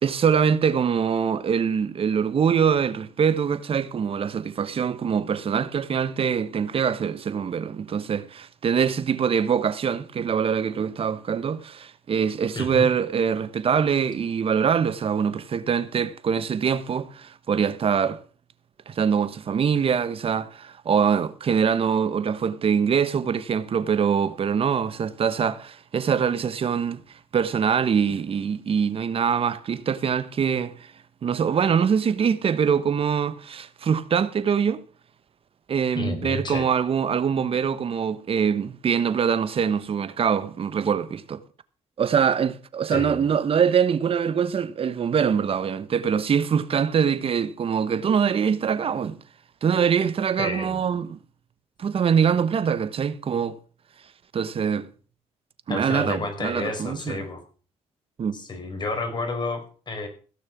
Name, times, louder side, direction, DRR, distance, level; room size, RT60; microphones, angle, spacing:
voice 1, 0.0-18.2 18.9-27.0 27.3-30.9 31.2-34.8 35.7-41.4 42.0-49.2 49.6-51.2 51.8-53.6 54.3-54.9 55.7-57.3 58.2-58.4, right 7 dB, 50° right, 1.1 m, -24 dB
voice 2, 12.5-12.9 35.9-36.7 42.9-43.2 50.4-50.8 55.7-57.4 58.3-60.1, left 3 dB, 35° left, 4.7 m, -30 dB
16.0 x 6.5 x 7.2 m
cardioid pair, 90°, 12 cm